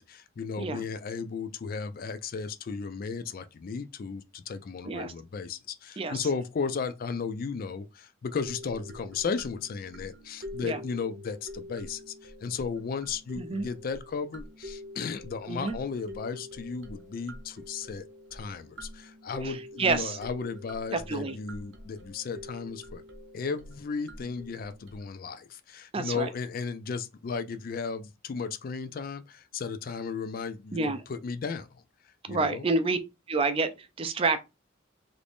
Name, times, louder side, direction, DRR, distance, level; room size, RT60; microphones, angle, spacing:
voice 1, 0.0-18.0 18.3-23.0 23.3-31.8 32.3-32.6, left 5 dB, 45° left, 0.3 m, -35 dB
voice 2, 6.0-6.3 10.6-10.8 13.4-13.7 15.5-15.8 19.4-20.2 20.9-21.4 25.9-26.3 30.7-31.0 32.3-33.0 33.3-34.4, right 3 dB, 30° right, 0.4 m, -28 dB
sound 1, 8.4-25.0, left 1 dB, 75° right, 0.8 m, -46 dB
3.0 x 2.6 x 3.4 m
head